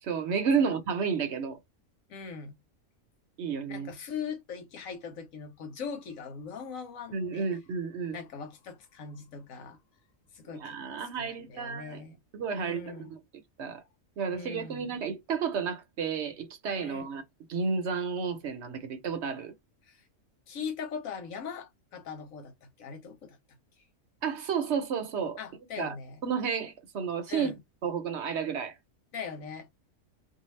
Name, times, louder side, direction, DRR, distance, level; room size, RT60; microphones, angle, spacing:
voice 1, 0.0-1.6 3.4-3.9 7.1-8.2 10.5-12.0 12.3-13.2 13.6-13.8 14.2-17.2 17.5-19.5 24.2-25.4 25.8-26.0 26.2-27.5 27.8-28.7, right 6 dB, 60° right, 0.9 m, -31 dB
voice 2, 2.1-2.6 3.7-7.5 8.1-9.8 10.3-12.2 12.5-13.1 14.3-14.9 16.8-17.1 19.9-20.0 20.5-23.4 25.4-26.2 27.3-27.6 29.1-29.7, left 6 dB, 85° left, 1.2 m, -40 dB
2.7 x 2.3 x 3.1 m
omnidirectional pair, 1.4 m